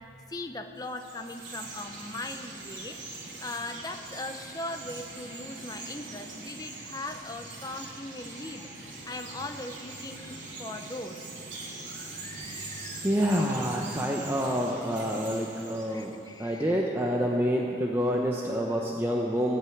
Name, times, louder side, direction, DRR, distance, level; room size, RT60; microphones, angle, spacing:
voice 1, 0.0-3.0 3.3-11.3 11.8-13.1 15.9-16.9 18.5-18.8, left 2 dB, 20° left, 6 dB, 0.8 m, -40 dB
Chirp tweet, 0.8-16.4, right 3 dB, 85° right, 3.1 m, -42 dB
voice 2, 13.0-16.1 16.4-19.6, equal, 10° right, -1 dB, 0.9 m, -27 dB
16.5 x 9.1 x 9.2 m, 2.9 s
head